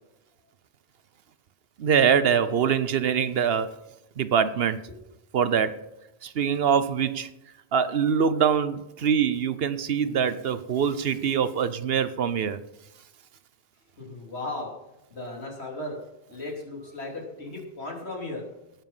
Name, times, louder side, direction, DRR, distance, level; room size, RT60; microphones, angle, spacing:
voice 1, 1.8-3.7 4.2-4.8 5.3-5.8 6.2-7.3 7.7-12.6, right 7 dB, 70° right, 14 dB, 1.0 m, -24 dB
voice 2, 14.0-14.7 15.1-16.0 16.3-18.4, left 2 dB, 80° left, -1 dB, 3.5 m, -36 dB
18.5 x 7.3 x 5.5 m, 0.90 s
omnidirectional pair, 1.1 m